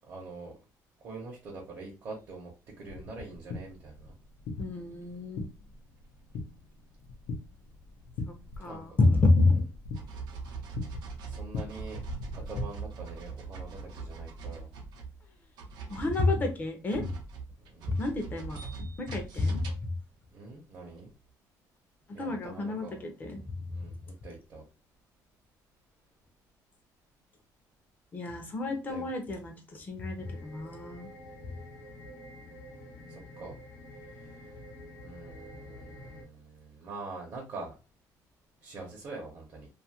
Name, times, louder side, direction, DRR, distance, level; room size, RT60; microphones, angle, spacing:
voice 1, 0.1-0.6 1.0-2.5 2.8-4.1 8.6-9.0 11.3-12.0 12.3-14.7 17.7-18.0 20.3-21.1 22.1-23.0 23.7-24.6 28.9-29.1 33.1-33.6 33.9-34.5 35.0-37.7 38.6-39.7, right 3 dB, 45° right, -1 dB, 0.8 m, -44 dB
sound 1, 2.9-12.7, left 3 dB, 85° left, 0.6 m, -41 dB
voice 2, 4.6-5.5 8.3-9.6 15.9-17.1 17.9-19.9 22.2-23.8 28.1-31.1, left 2 dB, 25° left, 4 dB, 0.6 m, -29 dB
sound 2, 8.7-8.8 9.2-9.4 9.9-15.3 15.6-20.0 20.9-21.0, right 5 dB, 75° right, 0.6 m, -42 dB
sound 3, 30.2-36.2, left 1 dB, 55° left, 1.0 m, -48 dB
2.6 x 2.4 x 2.8 m, 0.30 s
cardioid pair, 175°, 7 cm